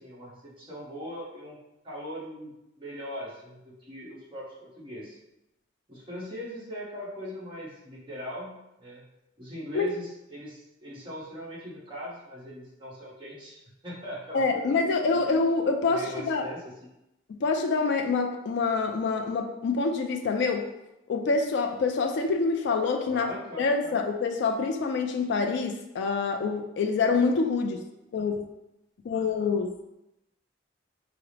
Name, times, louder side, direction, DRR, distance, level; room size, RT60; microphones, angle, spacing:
voice 1, 0.0-1.6 1.8-5.2 5.9-9.0 9.4-15.3 15.9-16.9 23.0-24.0, equal, 25° right, -6 dB, 1.1 m, -40 dB
voice 2, 14.3-16.4 17.4-20.6 21.1-23.3 23.6-27.8 28.1-28.4 29.0-29.7, left 4 dB, 60° left, 3 dB, 0.3 m, -26 dB
4.6 x 2.0 x 3.2 m, 0.90 s
head